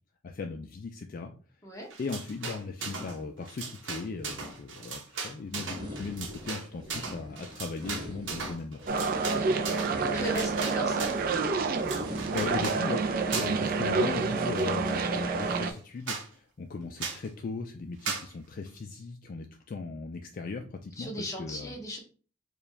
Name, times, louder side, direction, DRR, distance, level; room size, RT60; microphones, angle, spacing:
voice 1, 0.2-1.3 2.0-8.8 12.3-13.0 13.3-21.7, left 4 dB, 45° left, 4 dB, 0.3 m, -38 dB
sound 1, 1.9-3.2 3.4-11.3 11.7-12.8 13.3-13.7 14.0-15.0 15.4-15.5 15.8-15.9 16.1-16.3 17.0-17.3 18.1-18.3, right 5 dB, 65° right, 0.9 m, -38 dB
sound 2, 5.7-13.9, left 1 dB, 25° right, 1.1 m, -44 dB
sound 3, 8.9-15.7, right 4 dB, 45° right, 0.4 m, -28 dB
voice 2, 10.1-11.1 21.0-22.0, equal, 15° left, 0 dB, 1.0 m, -37 dB
4.7 x 2.3 x 3.3 m, 0.39 s
head